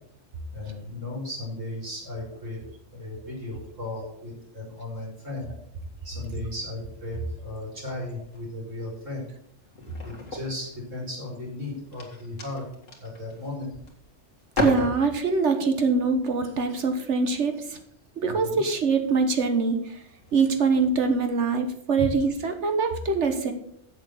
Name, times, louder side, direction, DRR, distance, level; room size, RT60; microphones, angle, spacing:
voice 1, 0.5-2.6 2.9-5.5 6.0-9.2 10.0-12.7 13.0-13.7 18.3-18.6 22.0-22.1, left 2 dB, 80° right, -3 dB, 4.5 m, -35 dB
sound 1, 6.9-7.6 8.1-8.4 8.8-11.2 11.7-14.1 14.4-15.5 16.4-16.7 17.8-18.0 18.8-19.1 19.7-19.8 20.1-21.1, left 2 dB, 80° left, 2.4 m, -36 dB
voice 2, 14.6-17.8 18.2-20.0 20.3-23.5, right 4 dB, 65° right, 7 dB, 1.4 m, -24 dB
8.0 x 7.6 x 6.4 m, 0.70 s
omnidirectional pair, 1.3 m